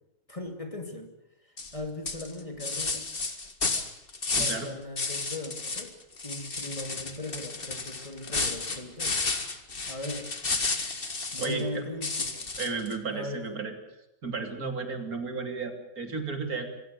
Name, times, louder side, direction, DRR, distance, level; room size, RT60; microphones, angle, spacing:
voice 1, 0.3-1.1 1.7-3.1 4.3-5.9 6.2-9.2 9.9-10.3 11.3-12.5 13.1-13.6, left 1 dB, 20° left, 5 dB, 2.8 m, -38 dB
sound 1, 1.6-1.8 2.1-4.7 5.0-5.9 6.2-11.6 12.0-12.9, left 3 dB, 40° left, 2.0 m, -32 dB
voice 2, 4.3-4.7 11.4-11.8 12.6-13.7 14.2-16.7, right 4 dB, 80° right, 6 dB, 3.5 m, -33 dB
25.5 x 16.0 x 9.4 m, 0.88 s
omnidirectional pair, 1.5 m